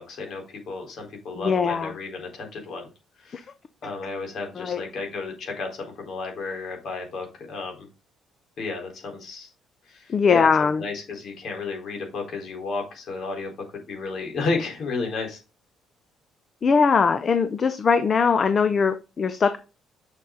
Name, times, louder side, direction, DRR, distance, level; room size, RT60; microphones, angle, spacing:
voice 1, 0.0-2.9 3.2-3.5 3.8-7.9 8.6-9.5 9.9-15.4, left 3 dB, 50° left, 4.0 m, -32 dB
voice 2, 1.4-1.9 4.6-4.8 10.1-10.8 16.6-19.6, left 5 dB, 35° left, 0.7 m, -21 dB
7.1 x 6.8 x 3.8 m
cardioid pair, 145°, 0 cm